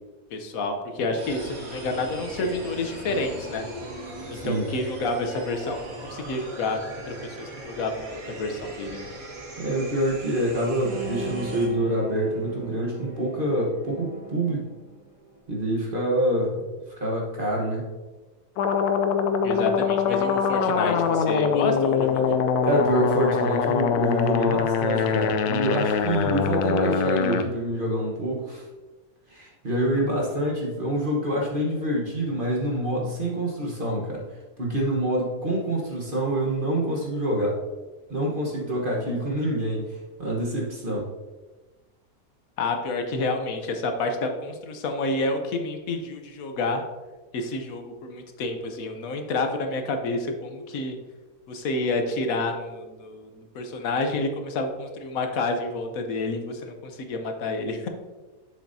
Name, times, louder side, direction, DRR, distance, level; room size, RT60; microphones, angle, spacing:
voice 1, 0.3-3.7 4.4-9.1 19.4-22.4 42.6-46.8 47.3-51.0 51.5-57.9, left 2 dB, 70° left, 5 dB, 1.2 m, -29 dB
sound 1, 1.2-11.7, right 1 dB, 70° right, 1.8 m, -39 dB
voice 2, 4.3-4.7 9.6-14.7 15.5-16.7 17.0-17.9 22.2-22.3 22.6-28.7 29.3-37.6 38.1-41.1, right 1 dB, 35° right, -2 dB, 1.3 m, -26 dB
Bowed string instrument, 10.8-15.4 15.8-15.9, right 3 dB, 90° right, 2.6 m, -39 dB
sound 2, 18.6-27.4, left 6 dB, 90° left, 1.1 m, -23 dB
7.3 x 7.2 x 2.7 m, 1.2 s
omnidirectional pair, 1.6 m